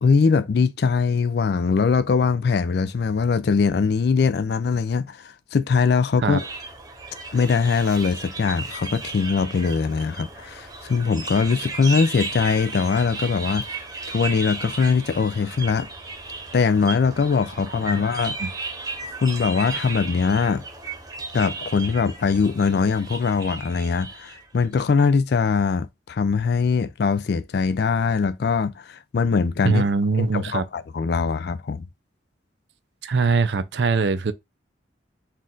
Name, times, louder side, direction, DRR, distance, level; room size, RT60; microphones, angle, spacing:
voice 1, 0.0-6.4 7.3-13.7 14.1-15.9 16.5-18.4 19.2-20.6 21.3-29.8 30.2-31.9, left 5 dB, 55° left, 0.3 m, -22 dB
sound 1, 6.4-24.6, right 3 dB, 20° right, 0.9 m, -35 dB
voice 2, 29.6-30.7 33.0-34.3, right 4 dB, 65° right, 0.5 m, -22 dB
4.3 x 2.4 x 3.7 m
head